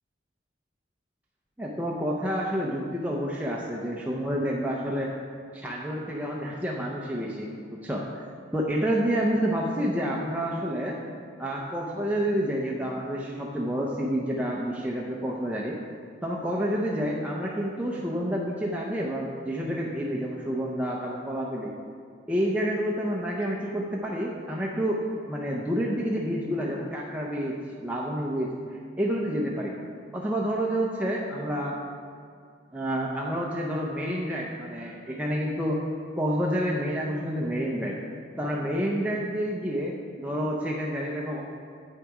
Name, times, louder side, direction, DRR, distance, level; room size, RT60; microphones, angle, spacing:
voice 1, 1.6-5.1 5.5-8.2 8.5-11.0 11.4-15.8 16.2-21.7 22.3-25.0 25.3-27.5 27.8-29.7 30.1-31.8 32.7-35.8 36.2-38.0 38.4-41.4, equal, 10° right, -3 dB, 0.6 m, -29 dB
8.4 x 6.5 x 4.8 m, 2.3 s
head